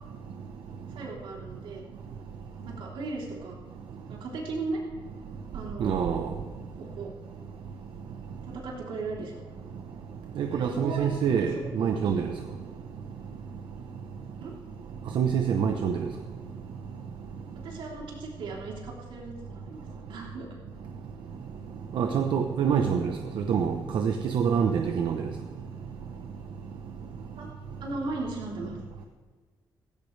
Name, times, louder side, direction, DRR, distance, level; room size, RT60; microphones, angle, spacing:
voice 1, 0.9-1.8 2.6-3.6 4.1-4.8 5.5-5.9 6.8-7.1 8.4-9.4 10.5-11.5 11.8-12.2 14.4-14.5 17.6-20.5 27.4-27.5 27.8-28.8, right 3 dB, 90° right, -2 dB, 3.5 m, -37 dB
voice 2, 5.8-6.3 10.4-12.3 15.1-16.1 21.9-25.3, right 7 dB, 70° right, 4 dB, 0.9 m, -26 dB
17.0 x 16.0 x 3.4 m, 1.5 s
wide cardioid pair, 180°, 9 cm